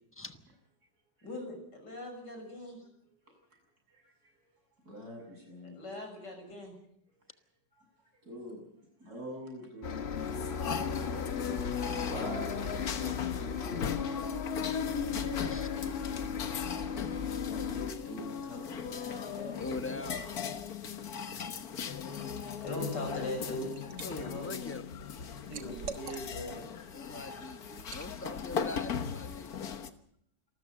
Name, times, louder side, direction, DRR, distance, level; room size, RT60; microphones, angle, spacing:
voice 1, 1.2-2.8 5.6-6.7 16.7-19.0 22.0-23.7 24.1-24.5 25.5-26.7, left 1 dB, 80° left, 4 dB, 7.2 m, -41 dB
voice 2, 4.9-5.8 8.3-8.6 9.0-10.2 11.7-13.1 13.4-15.6 18.8-20.0, equal, 60° right, 2 dB, 7.9 m, -45 dB
Bus, 9.8-17.9, left 6 dB, 45° left, 1.1 m, -36 dB
sound 1, 10.1-29.9, left 7 dB, 60° left, 1.7 m, -38 dB
voice 3, 19.6-20.3 24.0-24.8 26.9-29.7, left 2 dB, 10° left, 8 dB, 1.0 m, -42 dB
Liquid, 23.3-24.1 24.5-26.6 27.0-27.2 27.8-28.1, right 6 dB, 80° right, 2.1 m, -45 dB
27.5 x 14.0 x 8.0 m, 0.72 s
omnidirectional pair, 1.8 m